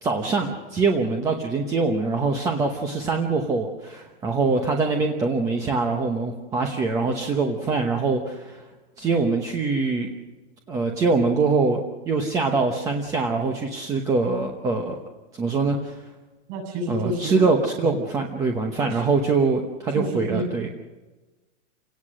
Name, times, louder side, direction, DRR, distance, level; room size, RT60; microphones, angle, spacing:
voice 1, 0.0-8.6 9.0-10.1 10.7-11.8 12.1-15.0 15.3-16.0 16.9-20.7, right 4 dB, 10° right, 3 dB, 0.9 m, -23 dB
voice 2, 16.5-17.5 17.8-18.0 18.8-19.0 19.9-20.5, right 2 dB, 30° right, 3 dB, 7.2 m, -29 dB
29.0 x 18.0 x 6.4 m, 1.2 s
supercardioid pair, 175°, 36 cm